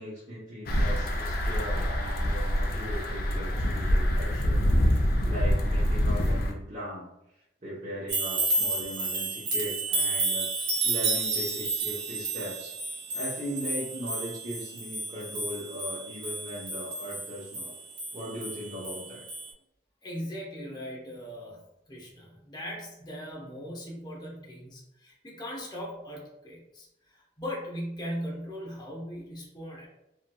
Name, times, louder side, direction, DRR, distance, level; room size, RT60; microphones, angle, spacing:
voice 1, 0.0-7.1 7.6-12.7 13.1-17.7 18.1-19.2, equal, 45° right, -9 dB, 0.9 m, -38 dB
sound 1, 0.7-6.5, equal, 55° left, 0.5 m, -25 dB
sound 2, 8.1-19.0 19.3-19.5, right 3 dB, 90° right, 0.9 m, -31 dB
voice 2, 20.0-21.6 21.9-29.9, equal, 25° left, -3 dB, 0.7 m, -39 dB
3.0 x 2.7 x 2.3 m, 0.86 s
head